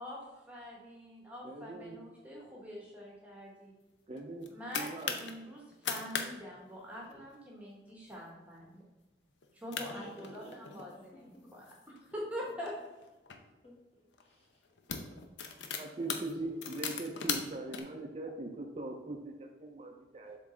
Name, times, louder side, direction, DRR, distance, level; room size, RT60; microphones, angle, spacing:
voice 1, 0.5-3.7 4.5-8.8 9.5-12.7, equal, 10° right, -3 dB, 1.0 m, -45 dB
voice 2, 1.4-2.0 4.1-4.5 4.7-5.2 15.8-20.4, right 2 dB, 35° right, 3 dB, 0.5 m, -41 dB
sound 1, 4.2-5.3 5.7-6.3 6.5-6.6 7.0-7.3 7.9-8.1 8.6-8.7 9.4-9.5 9.7-10.9 11.5-13.4 14.1-14.3 14.6-17.8, left 6 dB, 80° left, 0.7 m, -39 dB
voice 3, 9.7-11.5 13.4-14.5 16.0-17.3, equal, 35° left, -5 dB, 2.1 m, -54 dB
7.2 x 3.8 x 3.8 m, 1.1 s
head